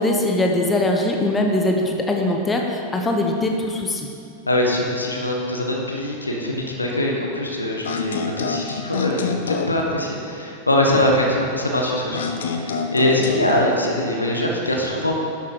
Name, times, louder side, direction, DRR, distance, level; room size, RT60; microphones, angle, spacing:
voice 1, 0.0-4.1, left 1 dB, 15° left, 1 dB, 1.1 m, -21 dB
voice 2, 4.5-15.2, left 1 dB, 80° left, 0 dB, 1.3 m, -22 dB
sound 1, 7.8-9.8 12.1-13.8, left 5 dB, 65° left, 0.8 m, -27 dB
11.0 x 7.4 x 4.7 m, 2.6 s
figure-of-eight pair, 90°, 0 cm